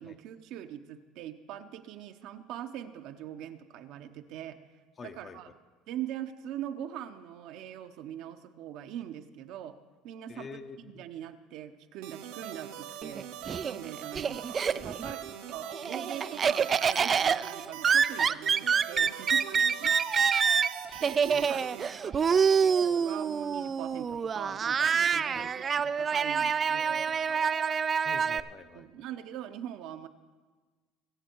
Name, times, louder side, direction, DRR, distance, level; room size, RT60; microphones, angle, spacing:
voice 1, 0.0-4.6 5.0-5.5 5.9-9.8 10.0-10.5 10.8-13.3 13.6-20.0 21.0-27.4 28.7-30.1, right 11 dB, 65° right, 7 dB, 0.9 m, -42 dB
voice 2, 5.0-5.4 10.3-11.0 15.0-15.2 21.3-21.7 22.2-22.3 25.3-25.5 28.0-28.9, left 5 dB, 30° left, 9 dB, 0.8 m, -46 dB
sound 1, 12.0-21.9, right 10 dB, 80° right, 1.2 m, -42 dB
Laughter, 13.0-15.1 15.5-28.4, right 6 dB, 30° right, 0.3 m, -27 dB
22.5 x 7.5 x 4.6 m, 1.4 s
supercardioid pair, 120°, 0 cm